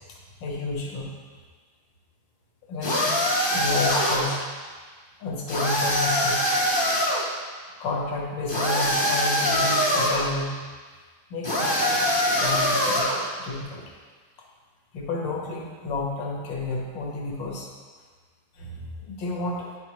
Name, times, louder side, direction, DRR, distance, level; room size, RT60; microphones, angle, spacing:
voice 1, 0.1-1.1 2.7-3.2 3.5-4.4 5.2-6.5 7.8-10.5 11.3-13.8 14.9-17.7 18.5-19.7, left 3 dB, 70° left, -2 dB, 1.7 m, -31 dB
sound 1, 2.8-4.4 5.5-7.3 8.5-10.3 11.4-13.3, equal, 30° left, 0.4 m, -23 dB
9.0 x 4.8 x 3.1 m, 1.5 s
omnidirectional pair, 2.1 m